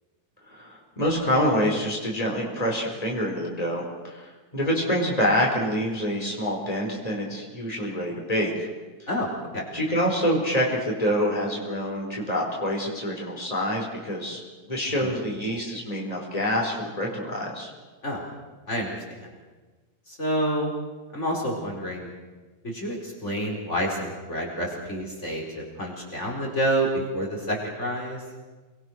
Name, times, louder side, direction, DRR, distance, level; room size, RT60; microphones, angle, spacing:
voice 1, 0.5-8.7 9.7-14.4 14.7-17.7, equal, 25° left, -1 dB, 4.8 m, -26 dB
voice 2, 9.1-9.6 15.0-15.1 18.0-18.2 18.7-19.3 20.1-20.7 21.1-22.1 22.6-28.2, equal, 45° left, -1 dB, 4.8 m, -28 dB
29.0 x 21.5 x 6.4 m, 1.3 s
omnidirectional pair, 1.7 m